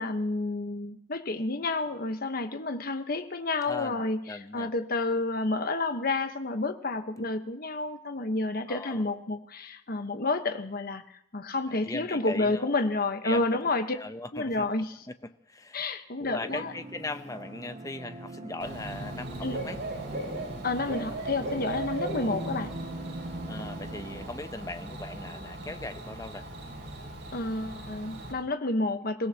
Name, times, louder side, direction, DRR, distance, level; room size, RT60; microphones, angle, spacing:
voice 1, 0.0-14.0 14.3-15.0 15.7-16.7 19.4-19.7 20.6-22.7 27.3-29.3, left 2 dB, 55° left, 8 dB, 1.2 m, -30 dB
voice 2, 3.7-4.7 8.7-9.0 11.7-12.7 13.2-13.4 13.9-14.7 15.5-15.8 16.2-19.8 23.5-26.5, left 2 dB, 20° left, 9 dB, 0.8 m, -39 dB
sound 1, 16.4-24.3, right 2 dB, 40° right, 1.6 m, -42 dB
Bird / Cricket, 18.6-28.3, right 1 dB, 80° right, 5.3 m, -38 dB
28.5 x 16.5 x 2.9 m, 0.71 s
head